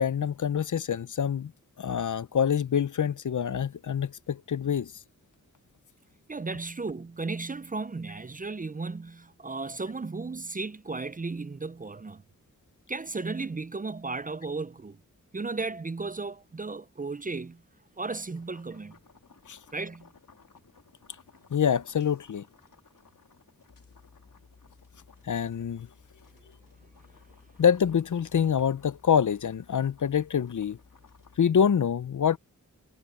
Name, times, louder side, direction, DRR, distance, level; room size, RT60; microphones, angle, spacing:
voice 1, 0.0-1.5 1.8-4.9 19.5-19.6 21.5-22.4 25.2-25.9 27.6-30.8 31.4-32.4, left 8 dB, 65° left, 0.6 m, -26 dB
voice 2, 6.3-12.2 12.9-15.0 15.3-17.6 18.0-19.0 19.7-20.1, right 3 dB, 25° right, 0.5 m, -35 dB
sound 1, 18.3-31.4, left 5 dB, 80° left, 2.9 m, -57 dB
wide cardioid pair, 70°, 33 cm